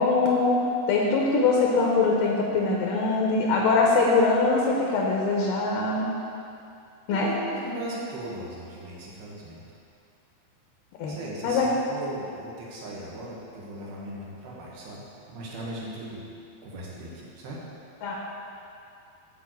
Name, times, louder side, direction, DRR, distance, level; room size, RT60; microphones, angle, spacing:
voice 1, 0.0-6.2 7.1-7.3 11.0-11.2 11.4-11.7 18.0-18.1, left 3 dB, 70° left, -2 dB, 2.3 m, -23 dB
voice 2, 7.1-9.6 11.0-16.2 16.6-17.6, right 1 dB, 70° right, -5 dB, 3.3 m, -38 dB
9.6 x 4.5 x 7.6 m, 2.6 s
omnidirectional pair, 4.7 m